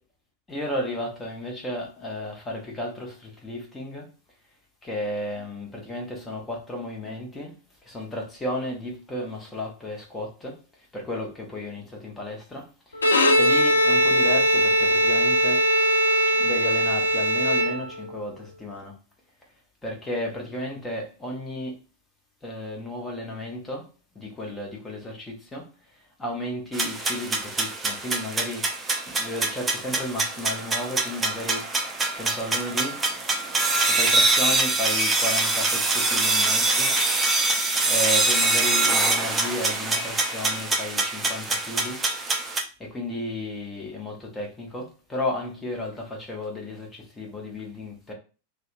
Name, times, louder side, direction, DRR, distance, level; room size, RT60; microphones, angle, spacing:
voice 1, 0.5-4.1 4.8-7.6 7.8-15.7 16.3-18.9 19.8-21.8 22.4-23.9 24.1-31.8 32.2-33.0 33.8-37.0 37.9-42.0 42.8-48.1, left 1 dB, 10° left, 0.9 m, -33 dB
Bowed string instrument, 12.9-18.2, equal, 75° left, 0.3 m, -20 dB
sound 1, 26.7-42.6, right 2 dB, 15° right, 0.5 m, -24 dB
2.7 x 2.2 x 2.5 m
figure-of-eight pair, 90°, 0 cm